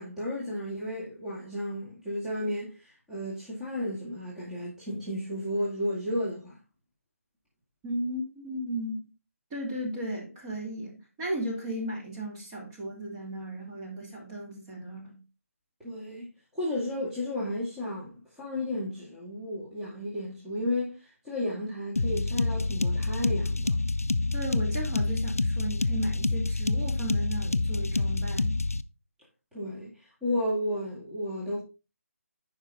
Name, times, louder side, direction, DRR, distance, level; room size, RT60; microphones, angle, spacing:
voice 1, 0.0-6.6 15.8-16.3 16.5-23.7 29.5-29.9 30.2-31.6, left 1 dB, 5° right, 1.9 m, -33 dB
voice 2, 7.8-9.1 9.5-15.2 24.3-28.5, right 1 dB, 20° right, 2.5 m, -35 dB
sound 1, 22.0-28.8, left 3 dB, 80° left, 0.5 m, -27 dB
9.9 x 5.1 x 3.7 m
figure-of-eight pair, 150°, 8 cm